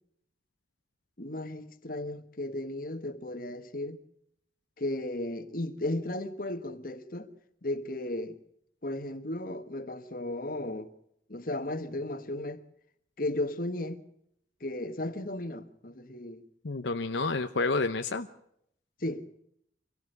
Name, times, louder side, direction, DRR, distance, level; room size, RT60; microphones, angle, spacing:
voice 1, 1.2-4.0 4.8-7.3 7.6-8.4 8.8-10.9 11.3-12.6 13.2-14.0 14.6-16.4 19.0-19.3, left 1 dB, 50° left, 1.5 m, -35 dB
voice 2, 16.6-18.3, left 3 dB, 75° left, 0.9 m, -29 dB
25.0 x 17.0 x 6.7 m
head